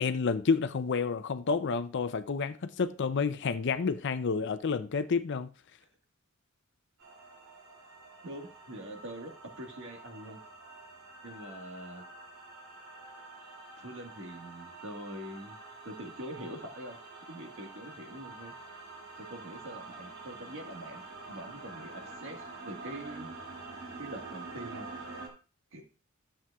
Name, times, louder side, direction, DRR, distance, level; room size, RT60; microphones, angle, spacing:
voice 1, 0.0-5.5, left 5 dB, 60° left, 0.5 m, -29 dB
sound 1, 7.0-25.3, right 3 dB, 80° right, 2.7 m, -47 dB
voice 2, 8.2-10.4 11.2-12.0 13.8-15.6 15.8-18.5 19.2-23.3 24.0-24.9 25.7-25.8, right 1 dB, 65° right, 1.6 m, -44 dB
12.5 x 7.5 x 2.3 m
head